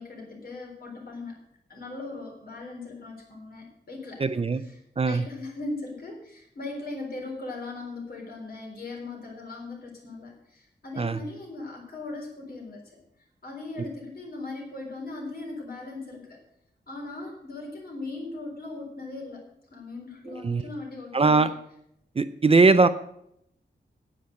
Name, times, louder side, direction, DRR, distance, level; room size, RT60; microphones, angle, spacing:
voice 1, 0.0-4.2 4.5-12.8 13.4-16.4 16.9-21.5, left 2 dB, 55° left, 1 dB, 3.7 m, -39 dB
voice 2, 4.2-4.6 5.0-5.2 11.0-11.2 13.8-13.9 20.3-20.6 21.1-21.5 22.2-22.9, right 3 dB, 35° right, 11 dB, 0.5 m, -20 dB
9.6 x 8.7 x 6.4 m, 0.74 s
wide cardioid pair, 160°, 18 cm